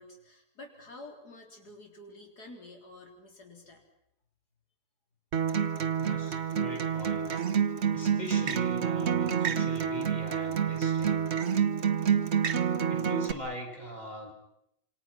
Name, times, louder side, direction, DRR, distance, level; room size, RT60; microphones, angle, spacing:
voice 1, 0.0-3.8, left 2 dB, 85° left, 2 dB, 4.2 m, -49 dB
Acoustic guitar, 5.3-13.3, right 7 dB, 45° right, 1.3 m, -28 dB
voice 2, 6.0-7.3 7.6-11.2 12.9-14.3, equal, 25° left, 1 dB, 5.6 m, -41 dB
27.5 x 26.5 x 6.0 m, 0.78 s
omnidirectional pair, 1.7 m